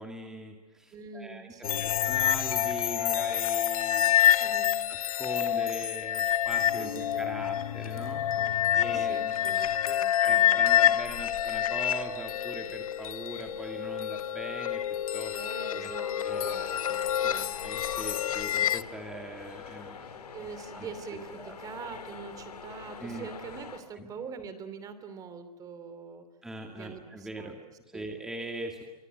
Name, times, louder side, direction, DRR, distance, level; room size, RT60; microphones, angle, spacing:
voice 1, 0.0-4.2 4.9-9.3 10.2-14.8 15.1-15.4 15.7-15.9 16.2-16.7 17.2-20.3 20.7-20.9 21.4-21.6 23.0-23.3 24.0-24.1 26.4-27.6 27.9-28.8, right 1 dB, 5° right, 2 dB, 2.2 m, -41 dB
voice 2, 0.9-1.9 4.4-4.8 6.8-7.3 8.7-10.6 15.3-17.5 20.3-26.3 26.8-28.1, right 5 dB, 20° right, 11 dB, 2.8 m, -44 dB
sound 1, 1.6-18.8, left 10 dB, 65° left, 1.1 m, -27 dB
sound 2, 16.3-23.8, left 5 dB, 85° left, 4.5 m, -45 dB
26.5 x 25.0 x 7.9 m, 1.2 s
hypercardioid pair, 145°, 19 cm